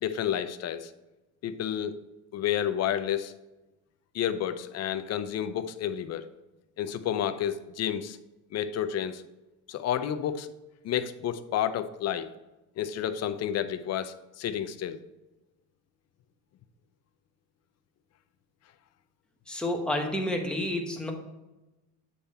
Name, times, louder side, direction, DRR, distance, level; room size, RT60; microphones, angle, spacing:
voice 1, 0.0-0.9 1.4-2.0 2.3-3.3 4.1-6.3 6.8-8.2 8.5-9.2 9.7-10.5 10.8-12.3 12.8-15.0, left 10 dB, 45° left, 11 dB, 0.5 m, -30 dB
voice 2, 19.5-21.1, left 1 dB, ahead, 1 dB, 1.0 m, -30 dB
8.5 x 3.5 x 4.2 m, 1.0 s
cardioid pair, 125°, 38 cm